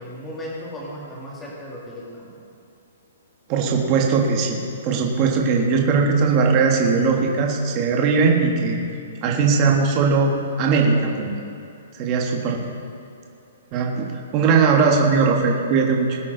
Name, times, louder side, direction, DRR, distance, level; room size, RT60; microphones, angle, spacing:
voice 1, 0.0-2.3, equal, 10° left, -4 dB, 2.1 m, -35 dB
voice 2, 3.5-8.8 9.2-10.3 10.6-11.3 11.9-12.6 13.7-16.2, right 5 dB, 20° right, 0 dB, 1.4 m, -19 dB
21.0 x 8.9 x 3.9 m, 2.7 s
hypercardioid pair, 180°, 0 cm